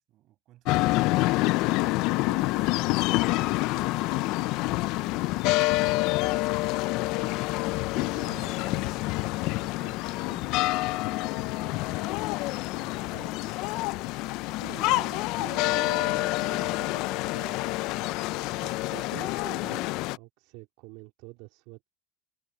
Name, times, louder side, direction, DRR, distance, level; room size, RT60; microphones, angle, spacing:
voice 1, 0.0-1.4 2.1-7.5 8.0-10.6 11.0-13.0, right 15 dB, 45° right, 6.4 m, -56 dB
sound 1, 0.6-20.2, left 20 dB, 55° left, 0.4 m, -27 dB
voice 2, 8.1-8.6 11.4-11.8 13.0-13.3 14.6-17.6 18.6-21.9, right 22 dB, 65° right, 2.8 m, -46 dB
cardioid pair, 155°, 0 cm